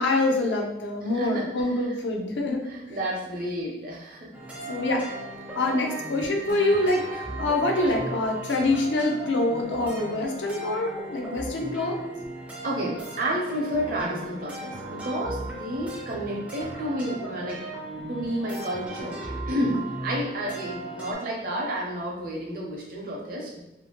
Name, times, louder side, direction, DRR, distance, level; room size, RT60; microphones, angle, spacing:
voice 1, 0.0-2.7 4.7-5.0 5.5-12.0, left 2 dB, 80° left, 1 dB, 0.5 m, -25 dB
voice 2, 1.1-1.8 2.7-4.3 12.6-17.6 18.1-19.2 19.5-23.6, equal, 50° right, -2 dB, 0.6 m, -30 dB
sound 1, 4.3-21.1, right 2 dB, 5° right, 0.4 m, -37 dB
2.6 x 2.4 x 2.9 m, 0.90 s
head